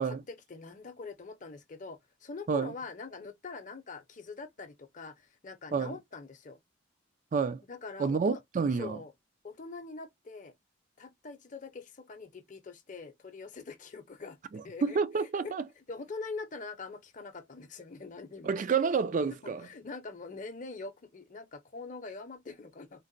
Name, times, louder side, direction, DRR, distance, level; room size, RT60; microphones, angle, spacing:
voice 1, 0.0-6.6 7.7-8.4 8.7-9.1 9.4-10.5 11.0-14.4 14.6-18.6 19.4-23.0, left 4 dB, 40° left, 0.6 m, -44 dB
voice 2, 8.0-9.0 14.5-15.6 18.4-19.7, right 5 dB, 40° right, 0.3 m, -29 dB
3.8 x 2.1 x 2.5 m
head